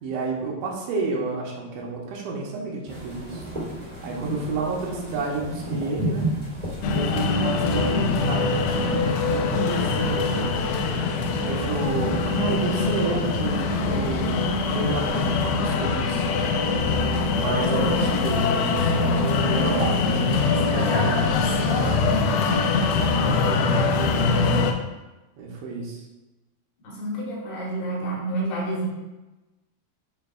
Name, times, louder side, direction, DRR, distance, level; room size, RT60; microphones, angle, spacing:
voice 1, 0.0-3.4 4.0-6.3 6.9-10.5 11.5-16.5 17.3-21.4 22.3-22.5 22.9-24.4 25.4-26.0, right 3 dB, 80° right, -3 dB, 3.2 m, -30 dB
sound 1, 2.8-15.5, right 1 dB, 45° right, 0.5 m, -35 dB
sound 2, 6.8-24.7, left 4 dB, 90° left, 2.3 m, -23 dB
voice 2, 20.0-22.0 26.8-28.9, right 1 dB, 70° left, -3 dB, 2.9 m, -30 dB
12.0 x 4.5 x 2.3 m, 1.1 s
omnidirectional pair, 5.5 m